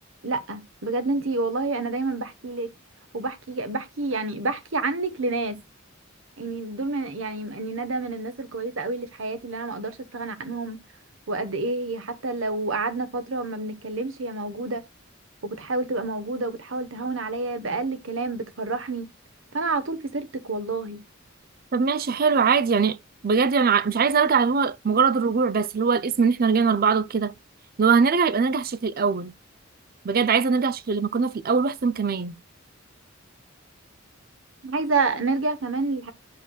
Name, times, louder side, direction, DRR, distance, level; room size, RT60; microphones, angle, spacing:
voice 1, 0.2-2.7 3.1-5.6 6.4-10.8 11.3-14.8 15.4-19.1 19.5-21.0 34.6-36.1, right 3 dB, 70° right, 1.2 m, -28 dB
voice 2, 21.7-23.0 23.2-27.4 27.8-29.3 30.0-32.4, right 5 dB, 45° right, 0.5 m, -21 dB
10.5 x 6.5 x 2.3 m
head